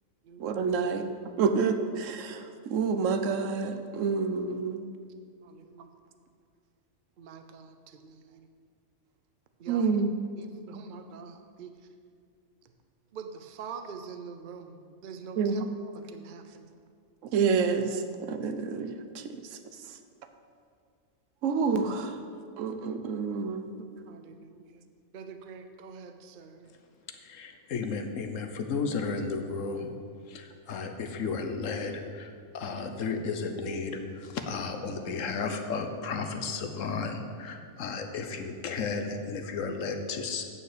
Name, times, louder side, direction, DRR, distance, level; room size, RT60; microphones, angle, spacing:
voice 1, 0.4-1.1 1.4-4.8 9.7-10.1 15.4-15.7 17.3-19.6 19.8-20.0 21.4-22.2 22.6-23.7, right 5 dB, 70° right, 8 dB, 1.1 m, -28 dB
voice 2, 5.4-5.9 7.2-8.5 9.6-10.0 10.4-11.8 12.6-12.7 13.1-15.6 16.0-16.8 24.1-24.9 25.1-26.7, right 6 dB, 50° right, 7 dB, 0.7 m, -45 dB
voice 3, 27.2-29.9 30.3-40.4, left 4 dB, 70° left, 6 dB, 1.2 m, -33 dB
9.0 x 6.7 x 6.7 m, 2.2 s
omnidirectional pair, 1.4 m